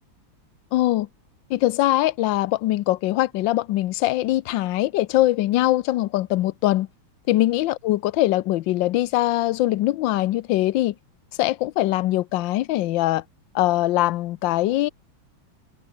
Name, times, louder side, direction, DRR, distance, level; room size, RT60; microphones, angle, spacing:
voice 1, 0.7-1.1 1.5-6.9 7.3-10.9 11.4-13.2 13.5-14.9, left 16 dB, 70° left, 1.3 m, -22 dB
omnidirectional pair, 2.3 m